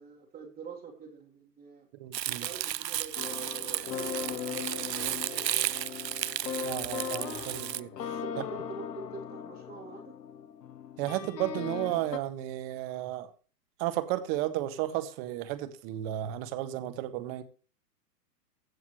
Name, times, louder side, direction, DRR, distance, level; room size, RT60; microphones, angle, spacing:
voice 1, 0.0-1.9 2.3-5.6 8.1-10.2, right 5 dB, 15° right, 1.9 m, -46 dB
voice 2, 2.0-2.5 6.6-7.9 11.0-13.3 13.8-17.4, right 14 dB, 40° right, 1.6 m, -33 dB
Crumpling crinkling, 2.1-7.8, right 12 dB, 90° right, 0.7 m, -34 dB
sound 1, 3.2-12.2, left 7 dB, 85° left, 1.1 m, -39 dB
16.0 x 7.2 x 3.1 m
hypercardioid pair, 125°, 48 cm